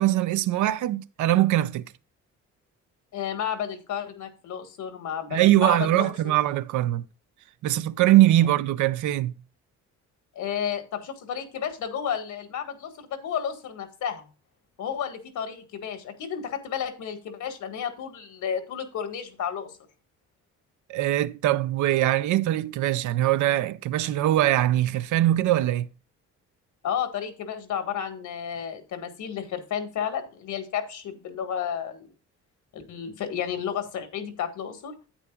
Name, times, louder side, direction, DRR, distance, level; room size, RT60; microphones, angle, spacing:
voice 1, 0.0-1.8 5.3-7.0 7.6-9.4 20.9-25.9, right 14 dB, 75° right, 0.6 m, -22 dB
voice 2, 3.1-6.3 10.3-14.3 14.8-19.8 26.8-32.1 32.7-34.9, left 8 dB, 75° left, 1.7 m, -32 dB
9.9 x 8.6 x 2.4 m
cardioid pair, 90°, 30 cm